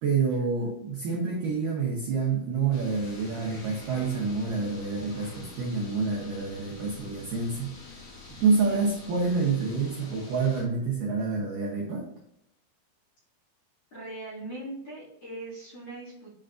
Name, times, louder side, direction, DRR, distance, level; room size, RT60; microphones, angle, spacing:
voice 1, 0.0-8.0 8.4-12.1, right 4 dB, 85° right, -3 dB, 1.8 m, -28 dB
sound 1, 2.7-10.6, left 2 dB, 80° left, 1.4 m, -46 dB
voice 2, 13.9-16.4, right 2 dB, 40° left, -10 dB, 2.8 m, -40 dB
9.5 x 4.4 x 2.6 m, 0.76 s
omnidirectional pair, 5.5 m